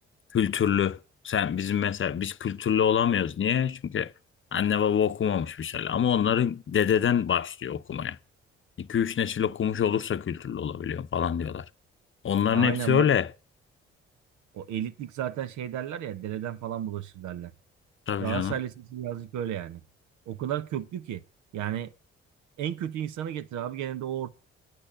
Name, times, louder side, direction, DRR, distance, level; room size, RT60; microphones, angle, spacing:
voice 1, 0.3-1.0 1.2-4.1 4.5-8.2 8.8-11.7 12.2-13.3 18.1-18.5, left 8 dB, 40° left, 0.8 m, -26 dB
voice 2, 12.5-13.1 14.5-17.5 18.2-19.8 20.3-21.2 21.5-21.9 22.6-24.3, right 10 dB, 65° right, 1.0 m, -33 dB
8.6 x 8.4 x 8.8 m
hypercardioid pair, 40°, 31 cm